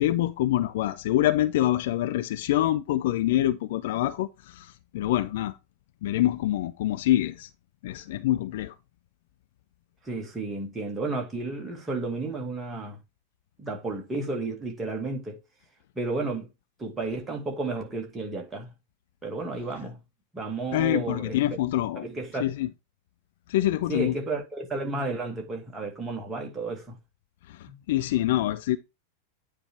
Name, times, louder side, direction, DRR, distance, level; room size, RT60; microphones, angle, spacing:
voice 1, 0.0-5.6 6.0-7.5 7.8-8.7 20.7-22.1 22.4-22.7 23.5-24.2 27.5-28.8, left 14 dB, 55° left, 0.4 m, -25 dB
voice 2, 10.1-13.0 13.6-15.4 16.0-16.5 16.8-18.7 19.2-20.0 20.3-21.6 22.0-22.5 23.9-27.0 27.7-27.8, right 3 dB, 15° right, 2.1 m, -32 dB
9.1 x 3.4 x 4.4 m
figure-of-eight pair, 90°, 0 cm